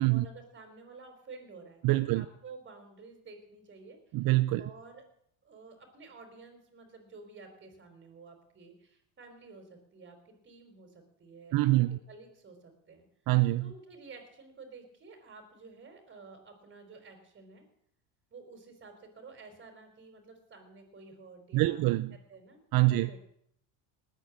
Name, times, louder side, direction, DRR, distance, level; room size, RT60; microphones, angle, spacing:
voice 1, 0.1-4.3 4.6-5.0 5.4-11.8 12.1-13.1 13.6-17.6 18.3-21.8 22.1-22.6 22.9-23.2, right 4 dB, 25° right, 4.7 m, -51 dB
voice 2, 1.8-2.2 4.1-4.7 11.5-12.0 13.3-13.7 21.5-22.1 22.7-23.1, right 18 dB, 50° right, 0.7 m, -25 dB
19.5 x 9.1 x 7.4 m
cardioid pair, 125°, 44 cm